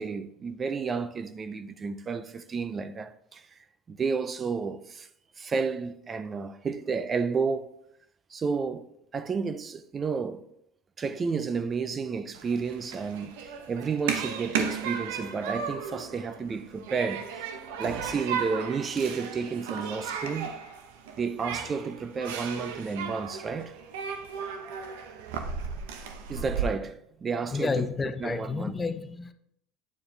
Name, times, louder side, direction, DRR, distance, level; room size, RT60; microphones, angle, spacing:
voice 1, 0.0-3.5 3.9-5.1 5.4-7.8 8.3-10.4 11.0-17.5 17.8-20.6 21.2-23.8 26.3-27.9 28.2-28.8, right 5 dB, 30° right, 0.5 m, -31 dB
Human group actions, 12.3-26.6, right 7 dB, 85° right, 0.8 m, -35 dB
voice 2, 27.5-29.3, left 4 dB, 20° left, 0.6 m, -30 dB
9.3 x 4.7 x 3.3 m
supercardioid pair, 100°, 0 cm